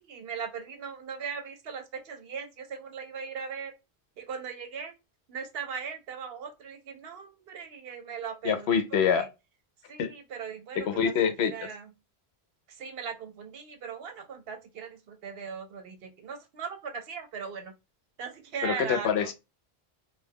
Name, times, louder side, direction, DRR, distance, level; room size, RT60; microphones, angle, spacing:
voice 1, 0.0-3.7 4.2-4.9 5.3-9.3 9.9-11.9 12.7-17.7 18.2-19.3, right 6 dB, 70° right, 0.8 m, -39 dB
voice 2, 8.4-9.3 10.0-10.1 10.9-11.5 18.6-19.3, left 7 dB, 75° left, 0.8 m, -25 dB
2.2 x 2.2 x 3.3 m
omnidirectional pair, 1.1 m